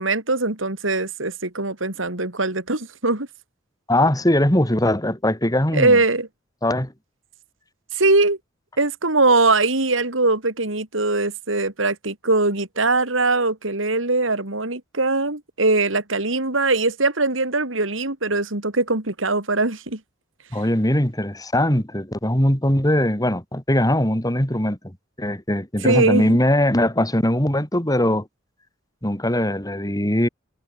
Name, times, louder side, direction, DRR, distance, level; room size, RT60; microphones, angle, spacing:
voice 1, 0.0-3.3 5.7-6.3 7.9-8.4 8.8-20.0 25.8-26.4, right 3 dB, 80° right, 3.9 m, -21 dB
voice 2, 3.9-6.0 6.6-6.9 20.5-24.8 25.2-28.3 29.0-30.3, left 1 dB, 20° left, 5.2 m, -20 dB
head